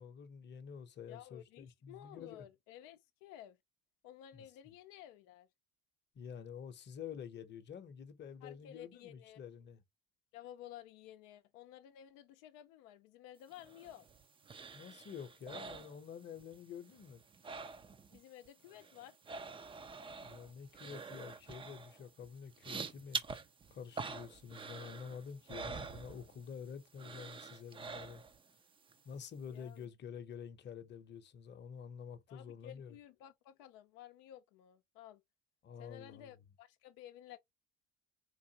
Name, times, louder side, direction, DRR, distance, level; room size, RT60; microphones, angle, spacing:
voice 1, 0.0-2.5 4.3-4.7 6.1-9.8 14.7-17.2 20.2-23.2 23.7-28.2 29.0-33.0 35.6-36.4, left 7 dB, 30° left, 0.8 m, -49 dB
voice 2, 1.1-3.6 4.0-5.5 8.4-9.4 10.3-14.0 18.1-19.1 29.5-29.9 32.3-35.2 35.8-37.4, left 12 dB, 75° left, 0.6 m, -54 dB
sound 1, 13.5-16.6 16.8-18.2 18.4-26.6 27.0-28.5 28.9-29.0, right 4 dB, 15° right, 0.4 m, -46 dB
4.7 x 2.5 x 2.8 m
cardioid pair, 110°, 34 cm